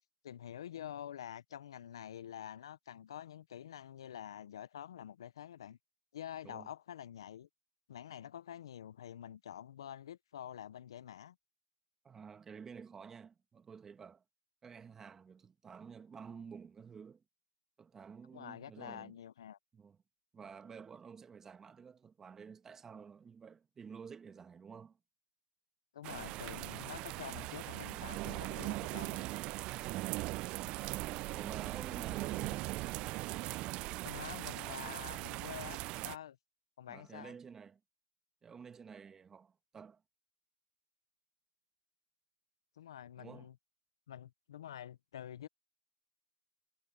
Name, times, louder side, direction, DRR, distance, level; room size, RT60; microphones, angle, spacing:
voice 1, 0.2-5.8 6.1-7.5 7.9-11.4 18.3-19.6 25.9-29.2 34.0-36.4 36.8-37.3 42.8-43.5 44.1-45.5, left 10 dB, 85° left, 0.6 m, -47 dB
voice 2, 12.0-14.2 14.6-17.2 17.8-19.1 19.7-20.0 20.3-25.0 30.8-32.7 36.9-37.8 38.4-40.0 43.2-43.5, right 6 dB, 20° right, 1.6 m, -51 dB
sound 1, 26.0-36.2, right 20 dB, 40° right, 0.5 m, -40 dB
hypercardioid pair, 125°, 2 cm